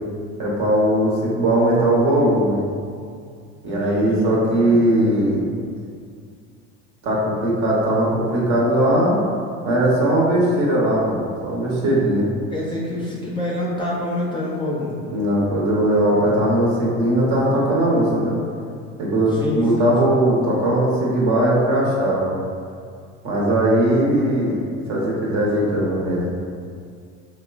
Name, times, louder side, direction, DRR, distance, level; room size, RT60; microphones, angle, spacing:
voice 1, 0.4-2.6 3.6-5.4 7.0-9.2 9.6-12.3 15.1-18.4 19.0-22.3 23.2-24.6 24.9-26.3, right 1 dB, 55° right, -4 dB, 0.9 m, -19 dB
voice 2, 3.6-4.9 12.5-15.0 19.3-19.9, left 1 dB, 15° left, -6 dB, 0.4 m, -27 dB
2.9 x 2.2 x 2.3 m, 2.2 s
supercardioid pair, 85°, 34 cm